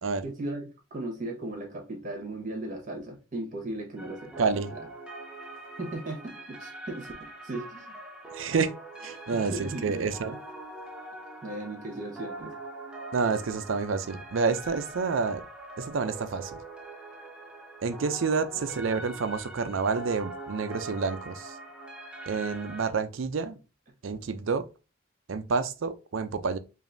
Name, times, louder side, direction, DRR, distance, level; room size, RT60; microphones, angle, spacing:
voice 1, 0.2-4.5 5.8-7.9 9.3-10.1 11.4-12.5, right 2 dB, 40° right, 1.4 m, -37 dB
sound 1, 4.0-22.9, right 2 dB, 5° right, 0.7 m, -43 dB
voice 2, 4.4-4.7 8.3-8.7 9.0-10.4 13.1-15.4 15.8-16.6 17.8-21.6 22.3-23.6 24.0-24.7 25.3-26.6, right 4 dB, 75° right, 0.5 m, -29 dB
5.0 x 2.6 x 2.6 m
head